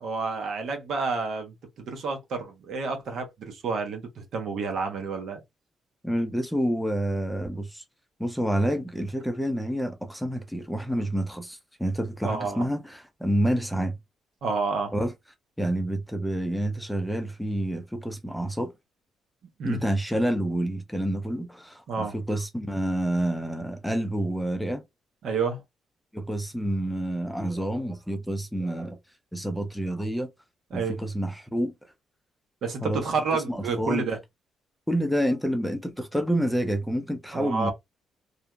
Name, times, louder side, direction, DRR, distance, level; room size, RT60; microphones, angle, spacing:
voice 1, 0.0-5.4 12.2-12.7 14.4-14.9 19.6-19.8 21.9-22.1 25.2-25.6 30.7-31.0 32.6-34.2 37.3-37.7, right 4 dB, 65° right, 1.0 m, -29 dB
voice 2, 6.0-7.8 8.2-14.0 14.9-15.1 15.6-18.7 19.6-24.8 26.1-29.0 29.3-30.3 30.7-31.7 32.8-33.0 33.5-34.0 34.9-37.7, right 1 dB, ahead, 0.6 m, -28 dB
2.7 x 2.5 x 2.3 m
cardioid pair, 90°, 0 cm